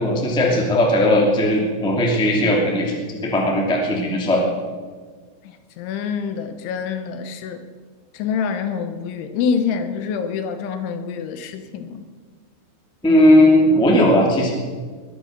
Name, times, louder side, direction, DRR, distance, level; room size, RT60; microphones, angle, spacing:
voice 1, 0.0-4.4 13.0-14.5, left 1 dB, 5° left, -1 dB, 0.7 m, -17 dB
voice 2, 5.8-7.6 8.1-12.0, left 6 dB, 75° left, 8 dB, 3.2 m, -26 dB
20.5 x 9.5 x 6.7 m, 1.5 s
omnidirectional pair, 5.7 m